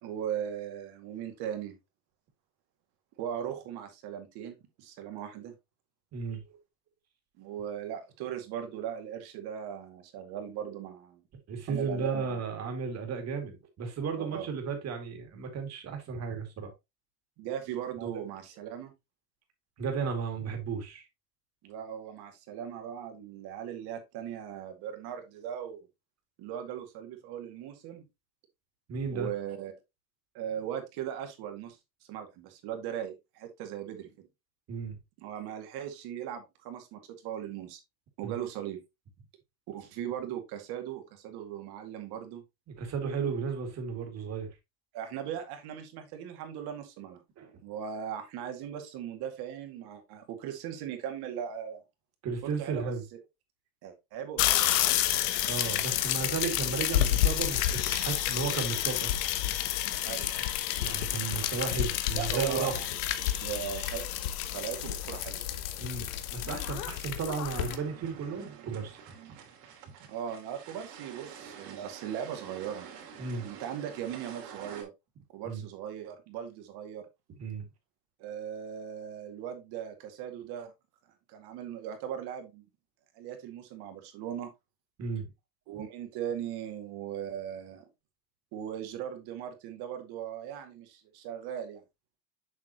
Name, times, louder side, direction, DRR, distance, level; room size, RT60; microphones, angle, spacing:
voice 1, 0.0-1.8 3.2-5.5 7.4-11.2 11.7-12.4 14.2-14.5 17.4-18.9 21.6-25.9 26.4-28.0 29.1-29.7 30.3-31.8 32.1-34.3 35.2-37.8 38.2-38.8 39.7-42.4 44.9-47.2 47.6-51.8 52.4-52.9 53.8-54.7 60.0-60.5 62.2-62.9 63.2-64.1 64.5-65.5 70.1-72.9 73.4-74.9 75.3-77.1 78.2-80.7 81.3-82.6 83.1-84.5 85.7-87.8 88.5-91.8, right 9 dB, 55° right, 2.2 m, -38 dB
voice 2, 6.1-6.6 11.5-16.7 18.0-18.2 19.8-21.0 28.9-29.3 34.7-35.0 38.2-38.4 42.7-44.5 47.4-47.6 52.2-53.0 55.5-59.1 60.8-62.7 65.8-69.0 73.2-73.5 75.4-75.6 77.4-77.7 85.0-85.3, right 5 dB, 35° right, 2.4 m, -34 dB
sound 1, 54.4-67.8, left 12 dB, 80° left, 1.2 m, -30 dB
sound 2, 67.5-74.8, right 7 dB, 80° right, 3.0 m, -48 dB
7.5 x 6.1 x 2.9 m
supercardioid pair, 140°, 47 cm